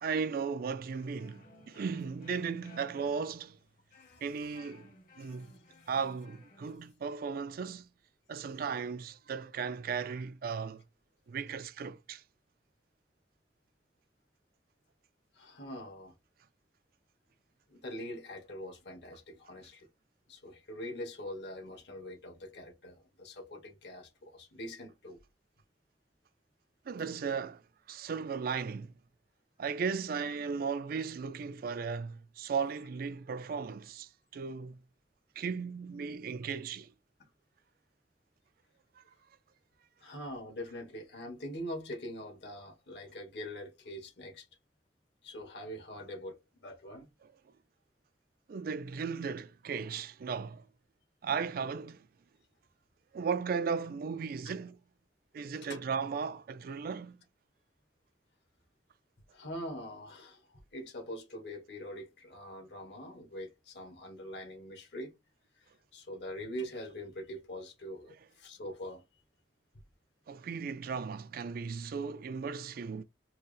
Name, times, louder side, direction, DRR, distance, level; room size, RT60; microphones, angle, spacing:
voice 1, 0.0-3.6 4.2-5.6 5.9-7.9 8.3-10.8 11.3-12.2 26.9-27.6 27.9-28.9 29.6-34.8 35.4-36.9 48.5-50.6 51.2-52.0 53.1-54.8 55.3-57.2 70.3-73.0, right 5 dB, 55° right, 0.4 m, -36 dB
sound 1, 0.9-6.8, left 2 dB, 50° left, 1.1 m, -59 dB
voice 2, 15.3-16.1 17.7-19.9 20.3-25.2 40.0-44.5 45.2-47.1 55.6-55.8 59.3-65.1 65.6-69.0, equal, 70° left, 1.3 m, -43 dB
4.5 x 2.1 x 3.2 m
head